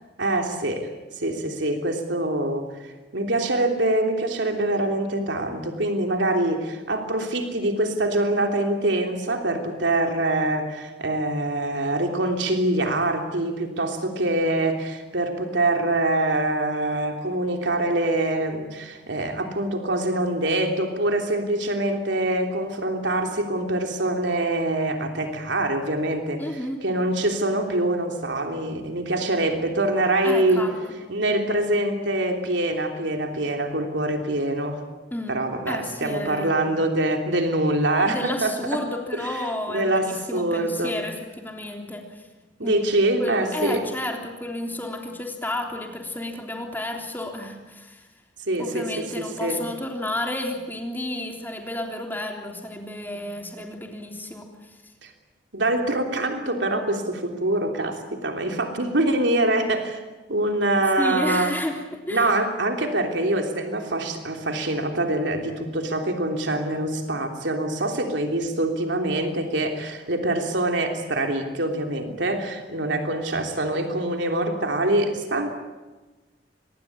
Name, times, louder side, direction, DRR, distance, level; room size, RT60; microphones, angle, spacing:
voice 1, 0.2-0.9 1.2-26.5 26.8-30.7 31.1-34.8 35.3-38.8 39.2-39.4 39.7-41.0 42.6-43.8 48.5-48.8 49.2-49.6 55.0-55.1 55.5-60.0 60.3-61.5 62.1-75.5, right 1 dB, 80° right, 4 dB, 3.2 m, -24 dB
voice 2, 26.4-26.8 30.2-30.9 35.1-36.8 38.1-42.2 42.6-42.8 43.2-48.1 48.6-54.5 61.0-62.3, left 1 dB, 10° left, 2 dB, 3.4 m, -31 dB
25.5 x 21.0 x 8.7 m, 1.2 s
head